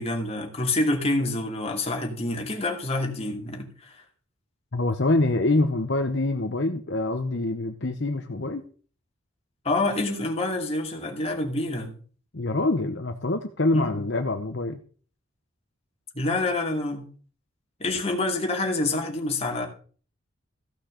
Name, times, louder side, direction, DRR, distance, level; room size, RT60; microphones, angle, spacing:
voice 1, 0.0-4.0 9.6-12.0 13.7-14.0 16.1-17.0 17.8-19.7, left 2 dB, 30° left, 2.6 m, -27 dB
voice 2, 4.7-8.6 12.3-14.8, left 2 dB, 55° left, 1.0 m, -25 dB
15.0 x 6.5 x 6.6 m
head